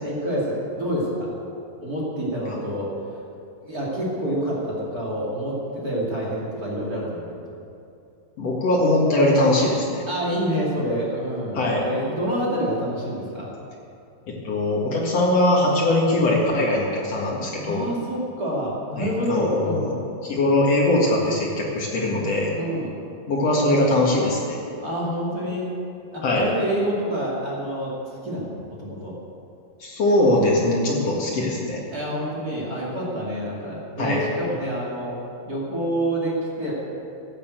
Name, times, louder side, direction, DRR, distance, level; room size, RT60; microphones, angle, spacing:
voice 1, 0.0-1.3 1.8-3.2 3.6-7.3 10.1-13.5 15.9-16.0 17.6-20.1 22.5-22.9 24.8-25.7 26.1-27.9 28.2-29.1 31.9-35.2 35.5-36.7, equal, 30° right, -5 dB, 1.9 m, -27 dB
voice 2, 8.4-10.0 11.5-11.8 14.4-17.8 19.0-19.9 20.2-22.5 23.3-24.6 26.2-26.5 29.8-31.8 34.0-34.2, left 1 dB, 50° left, -3 dB, 2.0 m, -21 dB
14.0 x 8.5 x 8.0 m, 2.6 s
omnidirectional pair, 5.4 m